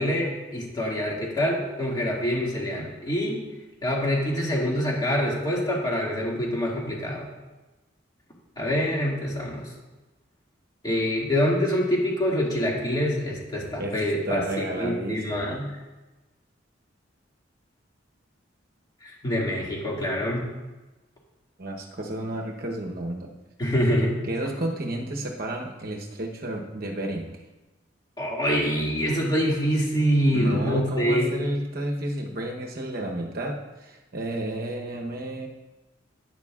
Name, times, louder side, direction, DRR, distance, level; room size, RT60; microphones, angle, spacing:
voice 1, 0.0-3.4 3.8-7.3 8.6-9.7 10.8-15.6 19.0-20.5 23.6-24.2 28.2-31.3, equal, 20° left, -4 dB, 2.1 m, -25 dB
voice 2, 14.2-15.7 21.6-23.3 24.2-27.4 30.3-35.5, right 1 dB, 50° right, 1 dB, 1.0 m, -31 dB
11.5 x 9.9 x 2.4 m, 1.1 s
head